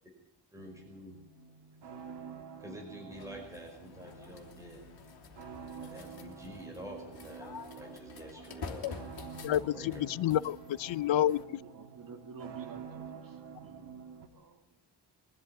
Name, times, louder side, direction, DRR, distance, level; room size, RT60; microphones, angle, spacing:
voice 1, 0.5-1.2 2.6-4.8 5.8-9.1 9.7-10.0, equal, 5° right, 0 dB, 5.1 m, -48 dB
sound 1, 0.6-14.3, right 6 dB, 65° right, 1.9 m, -48 dB
sound 2, 3.1-11.4, left 5 dB, 60° left, 2.9 m, -49 dB
voice 2, 9.4-11.4, left 12 dB, 85° left, 19 dB, 0.7 m, -29 dB
voice 3, 11.6-14.0 14.3-14.8, right 5 dB, 50° right, 4 dB, 2.8 m, -51 dB
23.0 x 13.0 x 9.7 m, 0.78 s
wide cardioid pair, 180°, 44 cm